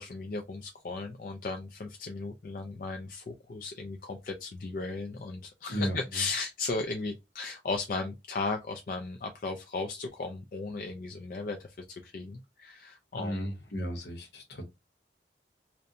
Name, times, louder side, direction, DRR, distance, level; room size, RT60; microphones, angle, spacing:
voice 1, 0.0-13.5, left 3 dB, 50° left, 0.4 m, -36 dB
voice 2, 5.7-6.2 13.1-14.7, equal, 75° left, 0.8 m, -34 dB
2.7 x 2.1 x 2.4 m
head